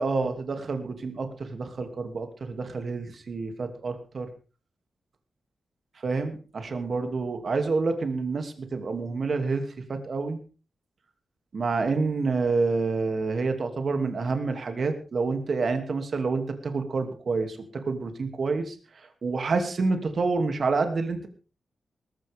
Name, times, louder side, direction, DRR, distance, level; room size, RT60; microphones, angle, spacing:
voice 1, 0.0-4.3 6.0-10.4 11.5-21.3, right 4 dB, 50° right, 6 dB, 2.7 m, -28 dB
18.5 x 15.0 x 3.7 m, 0.36 s
wide cardioid pair, 150°, 0 cm